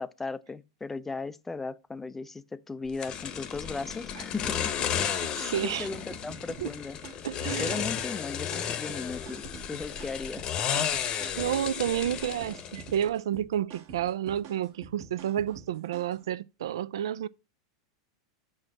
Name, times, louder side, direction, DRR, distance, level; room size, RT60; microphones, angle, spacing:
voice 1, 0.0-4.7 5.6-7.0 7.4-10.6, left 4 dB, 10° left, 0.4 m, -37 dB
sound 1, 3.0-13.1, left 9 dB, 35° left, 0.8 m, -33 dB
sound 2, 4.4-16.2, right 6 dB, 60° right, 1.4 m, -48 dB
voice 2, 5.0-5.9 6.6-6.7 7.2-7.8 11.3-17.3, right 10 dB, 85° right, 0.3 m, -30 dB
6.0 x 4.4 x 6.5 m
supercardioid pair, 125°, 2 cm